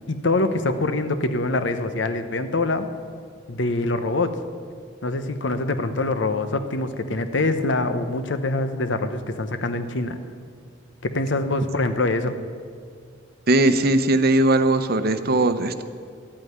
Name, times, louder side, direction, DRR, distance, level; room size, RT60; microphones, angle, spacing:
voice 1, 0.1-2.9 3.5-4.3 5.0-10.2 11.0-12.4, left 2 dB, 75° left, 9 dB, 1.0 m, -24 dB
voice 2, 13.5-15.8, right 2 dB, 55° right, 10 dB, 0.9 m, -19 dB
13.0 x 8.8 x 9.5 m, 2.3 s
head